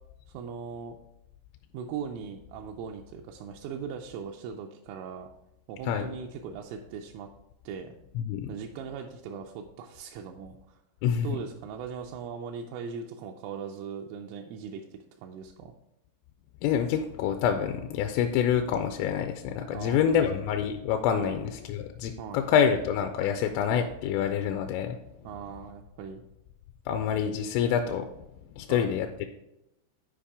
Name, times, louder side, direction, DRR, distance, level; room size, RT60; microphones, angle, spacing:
voice 1, 0.3-1.0 1.7-5.3 5.7-7.3 7.6-7.9 8.5-10.8 11.2-15.7 19.7-20.3 21.2-21.4 22.2-22.5 25.2-26.2 28.7-29.0, right 6 dB, 85° right, 2 dB, 3.1 m, -39 dB
voice 2, 8.2-8.5 11.0-11.3 16.6-25.0 26.9-28.1 28.6-29.3, left 8 dB, 85° left, 6 dB, 3.1 m, -27 dB
10.0 x 4.7 x 3.5 m, 0.87 s
omnidirectional pair, 5.8 m